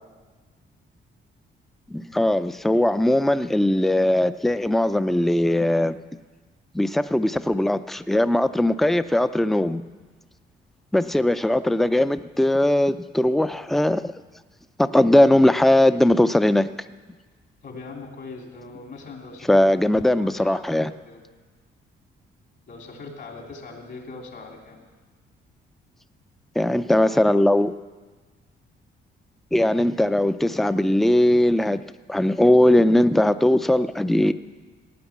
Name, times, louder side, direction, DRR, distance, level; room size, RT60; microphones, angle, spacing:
voice 1, 1.9-6.0 6.7-9.8 10.9-14.1 14.8-16.7 19.5-20.9 26.6-27.7 29.5-31.8 32.1-34.3, left 1 dB, ahead, 12 dB, 0.5 m, -19 dB
voice 2, 17.6-19.6 20.0-21.2 22.7-24.8, left 3 dB, 60° left, 1 dB, 3.1 m, -41 dB
15.5 x 9.2 x 7.2 m, 1.4 s
cardioid pair, 90°, 20 cm